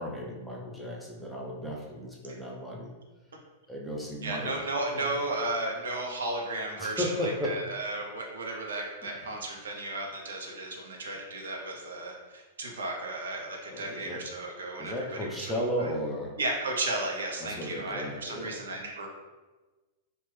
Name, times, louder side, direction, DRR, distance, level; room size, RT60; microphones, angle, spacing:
voice 1, 0.0-2.9 3.7-4.5 4.9-5.1 6.8-7.6 9.0-9.4 13.7-14.2 14.8-16.4 17.4-18.6, equal, ahead, -4 dB, 0.5 m, -35 dB
voice 2, 4.2-14.9 15.4-15.9 16.4-19.1, right 2 dB, 70° right, 0 dB, 0.5 m, -34 dB
2.9 x 2.1 x 3.2 m, 1.2 s
figure-of-eight pair, 100°, 0 cm